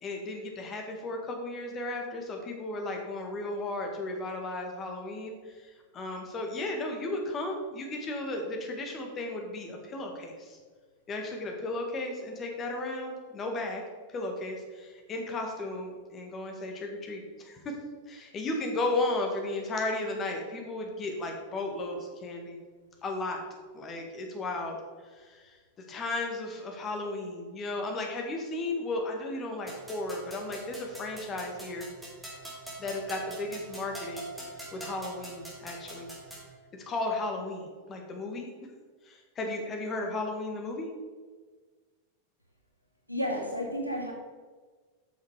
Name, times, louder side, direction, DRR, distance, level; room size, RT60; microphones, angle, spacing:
voice 1, 0.0-5.7 5.9-10.6 11.1-13.8 14.1-17.7 18.1-22.6 23.0-23.4 23.7-24.8 25.1-25.5 25.9-31.9 32.8-34.3 34.7-36.1 36.9-38.5 39.1-40.9, left 2 dB, 25° left, 2 dB, 1.8 m, -34 dB
sound 1, 29.7-36.5, right 2 dB, 5° right, 2.9 m, -44 dB
voice 2, 43.1-44.1, equal, 90° right, 1 dB, 0.9 m, -31 dB
8.0 x 6.4 x 4.9 m, 1.4 s
figure-of-eight pair, 90°, 0 cm